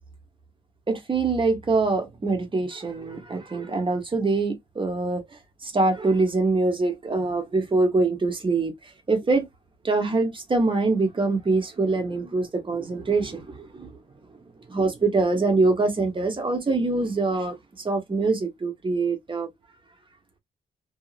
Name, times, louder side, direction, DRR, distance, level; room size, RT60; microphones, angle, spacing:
voice 1, 0.9-8.7 9.1-9.5 9.8-13.9 14.7-19.5, right 3 dB, 30° right, 1.1 m, -24 dB
2.8 x 2.7 x 2.5 m
wide cardioid pair, 130°, 18 cm